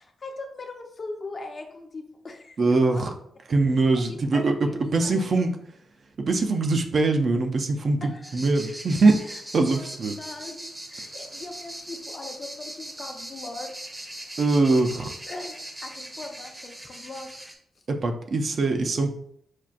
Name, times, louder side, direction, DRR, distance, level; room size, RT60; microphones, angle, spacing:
voice 1, 0.0-3.0 4.1-5.4 8.0-8.8 9.0-9.4 9.7-9.9 10.2-13.7 15.3-17.3, left 2 dB, 40° left, 3 dB, 0.6 m, -40 dB
voice 2, 2.6-3.1 3.5-5.6 6.2-9.1 9.5-10.2 14.4-15.1 17.9-19.1, right 3 dB, 55° right, 4 dB, 0.5 m, -22 dB
sound 1, 8.2-17.6, right 1 dB, 15° right, 0.7 m, -40 dB
5.8 x 2.4 x 2.4 m, 0.67 s
cardioid pair, 100°, 0 cm